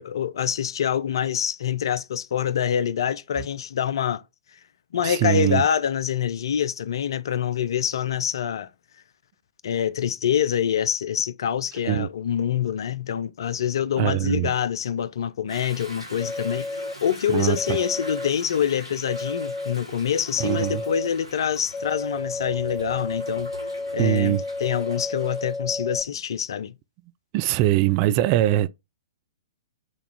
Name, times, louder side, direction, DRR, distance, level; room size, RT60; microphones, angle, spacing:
voice 1, 0.0-4.2 4.9-8.7 9.6-23.5 23.9-26.7, left 9 dB, 55° left, 0.4 m, -26 dB
voice 2, 5.0-5.6 11.8-12.1 14.0-14.5 17.3-17.8 20.4-20.8 24.0-24.4 27.3-28.7, right 14 dB, 35° right, 0.3 m, -22 dB
Toilet flush / Drip / Trickle dribble, 15.5-25.6, equal, 90° right, 1.5 m, -43 dB
sound 1, 16.2-16.9 17.5-18.3 19.1-19.7 20.4-21.1 21.7-26.0, left 2 dB, 15° left, 0.8 m, -32 dB
6.1 x 2.4 x 3.6 m
figure-of-eight pair, 110°, 3 cm